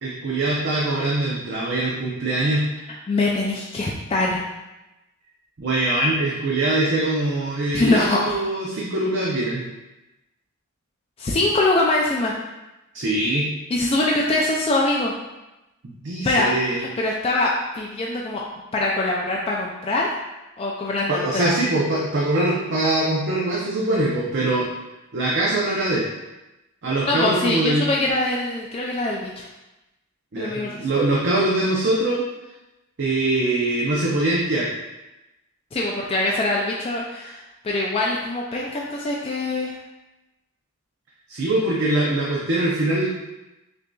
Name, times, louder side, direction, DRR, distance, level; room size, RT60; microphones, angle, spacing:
voice 1, 0.0-2.6 5.6-9.6 12.9-13.5 15.8-16.8 21.1-24.7 25.1-26.1 26.8-27.9 30.3-32.2 33.0-34.7 41.3-43.1, right 2 dB, 55° right, -4 dB, 0.6 m, -23 dB
voice 2, 3.1-4.4 7.7-8.3 11.2-12.3 13.7-15.1 16.2-17.5 17.7-18.4 18.7-20.2 20.6-21.5 27.1-29.5 30.4-30.9 35.7-39.8, left 2 dB, 25° left, -3 dB, 0.3 m, -23 dB
6.4 x 2.6 x 2.3 m, 1.0 s
head